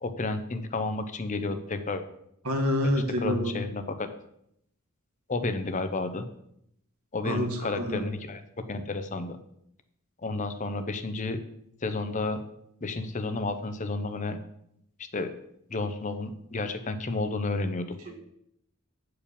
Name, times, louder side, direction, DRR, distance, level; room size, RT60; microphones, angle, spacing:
voice 1, 0.0-2.0 2.8-4.1 5.3-6.2 7.1-8.4 8.7-9.4 10.2-11.4 11.8-12.4 12.8-14.4 15.0-15.3 15.7-18.0, left 3 dB, 35° left, 9 dB, 0.7 m, -31 dB
voice 2, 2.5-3.6 7.3-7.5 7.7-8.0 18.1-18.2, equal, 85° right, 3 dB, 1.8 m, -27 dB
8.6 x 4.8 x 7.0 m, 0.75 s
head